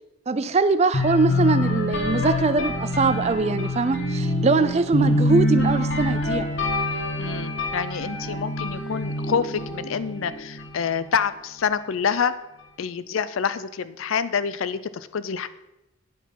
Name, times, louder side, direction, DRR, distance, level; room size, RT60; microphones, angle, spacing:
voice 1, 0.3-6.5, right 4 dB, 30° right, 13 dB, 0.3 m, -22 dB
sound 1, 0.9-10.8, left 1 dB, 60° left, 1.5 m, -25 dB
voice 2, 7.2-12.3 12.8-15.5, left 7 dB, 75° left, 14 dB, 0.4 m, -27 dB
9.3 x 4.8 x 5.4 m, 0.89 s
head